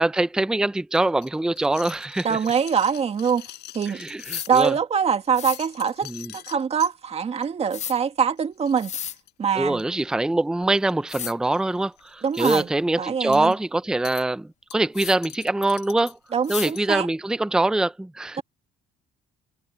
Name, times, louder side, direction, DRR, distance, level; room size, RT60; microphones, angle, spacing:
voice 1, 0.0-2.4 3.9-4.7 6.0-6.3 9.6-16.2 16.5-18.4, right 2 dB, 5° right, 0.5 m, -24 dB
sound 1, 0.9-4.8 5.3-6.9 7.4-7.7 7.9-8.1 8.4-8.5 8.6-10.0 10.8-11.1 11.4-11.6 12.0-12.4 13.3-13.5 14.0-14.2 14.7-16.9, left 16 dB, 80° left, 6.7 m, -43 dB
voice 2, 2.2-3.5 3.7-4.0 4.5-8.9 9.4-9.8 12.2-12.7 13.0-13.5 16.3-17.1, right 7 dB, 40° right, 2.0 m, -24 dB
sound 2, 4.2-4.5 5.3-5.6 7.7-7.9 8.8-9.2 10.6-10.7 11.1-11.3 12.0-12.1 12.4-12.6 14.9-15.2 16.5-16.7, left 9 dB, 40° left, 0.8 m, -33 dB
cardioid pair, 110°, 17 cm